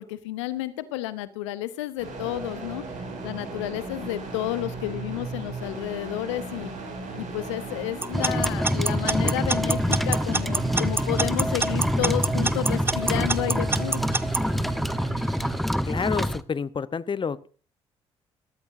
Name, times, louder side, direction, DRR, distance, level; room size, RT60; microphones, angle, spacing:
voice 1, 0.0-2.8 3.2-6.7 7.1-14.0, left 15 dB, 85° left, 15 dB, 0.7 m, -31 dB
sound 1, 2.0-15.6, right 4 dB, 60° right, 6.3 m, -35 dB
Alarm / Clock, 8.0-14.4, right 2 dB, 15° right, 0.7 m, -25 dB
sound 2, 8.1-16.4, equal, ahead, 1.0 m, -26 dB
voice 2, 15.8-17.5, left 6 dB, 35° left, 16 dB, 0.9 m, -29 dB
19.5 x 13.0 x 2.7 m, 0.38 s
hypercardioid pair, 45°, 15 cm